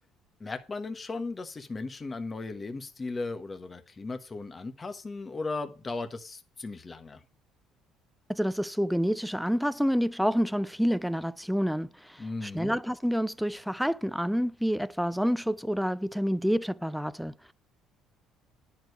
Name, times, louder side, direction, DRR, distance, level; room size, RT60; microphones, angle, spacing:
voice 1, 0.4-7.2 12.2-12.7, left 3 dB, 25° left, 1.3 m, -36 dB
voice 2, 8.3-17.5, equal, ahead, 0.5 m, -28 dB
10.5 x 4.7 x 6.5 m
cardioid pair, 115°, 0 cm